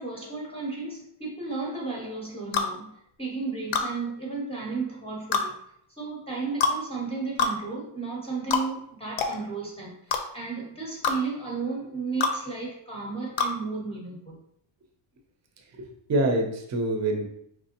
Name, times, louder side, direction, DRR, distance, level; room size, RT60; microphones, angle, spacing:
voice 1, 0.0-5.6 6.0-14.4, right 4 dB, 10° left, -3 dB, 0.7 m, -34 dB
sound 1, 2.5-2.7 3.7-3.9 5.3-5.5 6.6-6.8 7.4-7.6 8.5-8.7 9.2-9.3 10.1-10.2 11.0-11.2 12.2-12.4 13.4-13.5, left 5 dB, 65° left, 0.7 m, -24 dB
voice 2, 15.8-17.2, right 1 dB, 35° right, 4 dB, 0.6 m, -26 dB
4.9 x 3.2 x 2.9 m, 0.72 s
cardioid pair, 170°, 50 cm